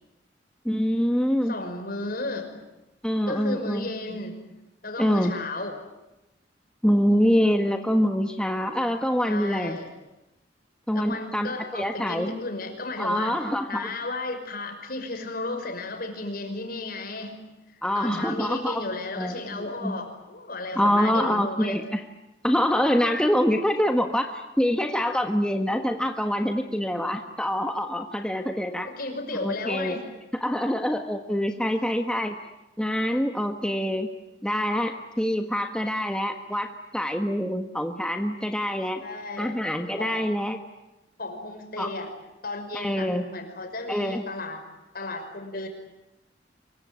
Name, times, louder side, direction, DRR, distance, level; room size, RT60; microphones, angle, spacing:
voice 1, 0.6-1.5 3.0-4.2 5.0-5.4 6.8-9.8 10.9-12.3 13.0-13.9 17.8-18.8 19.2-20.0 20.7-22.0 22.4-28.9 29.3-30.0 30.4-32.3 32.8-34.1 34.4-39.0 39.4-40.6 41.8-41.9 42.7-43.2 43.9-44.2, equal, 5° left, 5 dB, 1.4 m, -25 dB
voice 2, 1.5-2.6 3.3-4.4 4.8-5.8 9.3-9.9 10.9-17.4 17.9-21.8 28.9-30.1 39.0-39.6 40.0-40.4 41.2-42.1 42.4-44.6 44.9-45.7, left 2 dB, 55° left, 5 dB, 5.7 m, -34 dB
25.0 x 23.0 x 9.7 m, 0.96 s
head